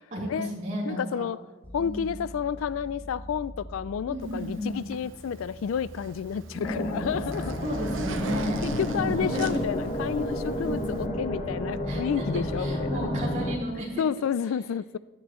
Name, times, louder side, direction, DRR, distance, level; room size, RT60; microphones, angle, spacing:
voice 1, 0.1-1.3 1.8-2.1 4.1-4.8 6.5-7.0 7.6-8.7 9.0-9.7 10.6-11.1 11.9-14.0, equal, 40° right, 3.7 m, -34 dB
voice 2, 0.9-1.4 1.7-7.6 8.6-13.1 14.0-15.0, left 7 dB, 80° left, 0.3 m, -30 dB
sound 1, 1.6-11.2, equal, 10° left, 1.3 m, -46 dB
Zipper (clothing), 4.2-11.1, right 5 dB, 70° right, 0.8 m, -44 dB
sound 2, 6.6-13.6, left 1 dB, 35° left, 1.3 m, -30 dB
16.5 x 12.0 x 3.1 m
head